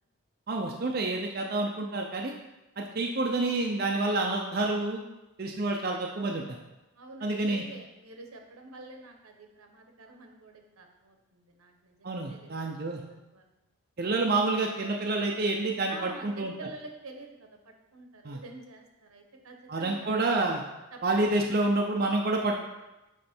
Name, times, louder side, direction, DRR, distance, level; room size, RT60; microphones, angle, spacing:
voice 1, 0.5-2.3 2.8-5.0 5.4-6.6 7.2-7.6 12.0-13.0 14.0-16.5 18.2-18.4 19.7-20.6 21.0-22.6, right 2 dB, 45° right, 0 dB, 0.5 m, -28 dB
voice 2, 6.9-12.5 13.0-13.4 15.9-20.1 20.9-21.2, right 2 dB, 85° right, 3 dB, 1.0 m, -48 dB
8.5 x 3.2 x 4.4 m, 1.0 s
head